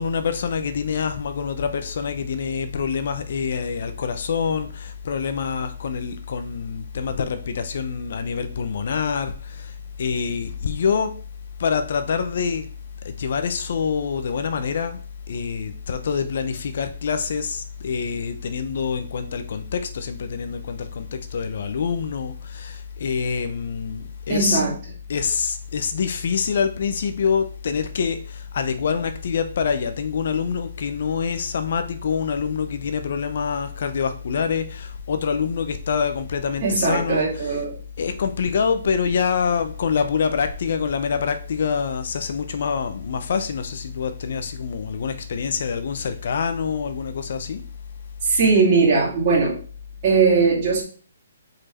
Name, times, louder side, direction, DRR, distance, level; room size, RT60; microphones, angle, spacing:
voice 1, 0.0-9.7 10.0-11.1 11.6-12.7 13.0-15.0 15.3-24.6 25.1-37.6 38.0-47.6, left 6 dB, 55° left, 0.7 m, -26 dB
voice 2, 24.3-24.8 36.6-37.8 48.2-49.6 50.0-50.8, right 4 dB, 35° right, 2.3 m, -19 dB
5.0 x 4.5 x 4.3 m
hypercardioid pair, 160°, 0 cm